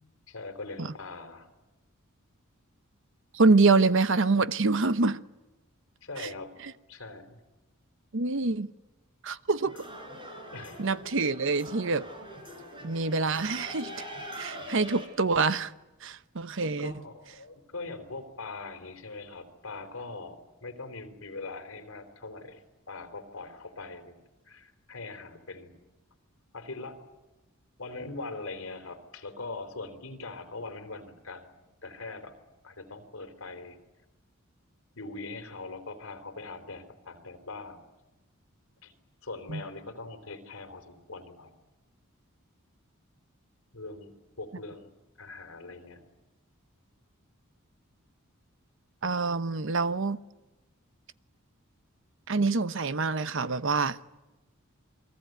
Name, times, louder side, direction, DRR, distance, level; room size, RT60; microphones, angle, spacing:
voice 1, 0.3-1.5 6.0-6.5 6.9-7.4 10.5-10.8 16.8-22.6 22.9-24.2 24.5-25.8 26.5-27.0 27.8-32.3 32.6-33.8 35.0-37.8 38.8-38.9 39.2-41.5 43.7-44.9 45.2-46.1, left 3 dB, 65° left, 3.6 m, -41 dB
voice 2, 3.3-5.2 6.2-6.3 6.6-6.7 8.1-8.7 9.2-9.8 10.8-12.1 12.8-14.0 14.4-15.7 16.0-16.9 39.5-39.6 49.0-50.2 52.3-54.0, right 3 dB, 60° right, 0.9 m, -26 dB
sound 1, 9.6-15.1, equal, 25° right, 5.5 m, -43 dB
29.0 x 22.0 x 9.3 m
head